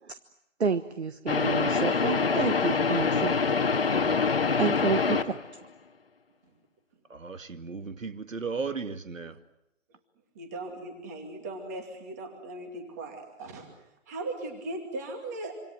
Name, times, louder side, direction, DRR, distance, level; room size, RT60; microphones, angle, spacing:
voice 1, 0.6-3.3 4.6-5.4, right 5 dB, 55° right, 1.3 m, -29 dB
sound 1, 1.3-5.5, left 5 dB, 45° left, 1.8 m, -25 dB
voice 2, 7.1-9.4, right 4 dB, 80° right, 2.3 m, -35 dB
voice 3, 10.3-13.8 14.1-15.6, right 2 dB, 15° right, 2.5 m, -38 dB
26.5 x 26.5 x 7.7 m
hypercardioid pair, 175°, 38 cm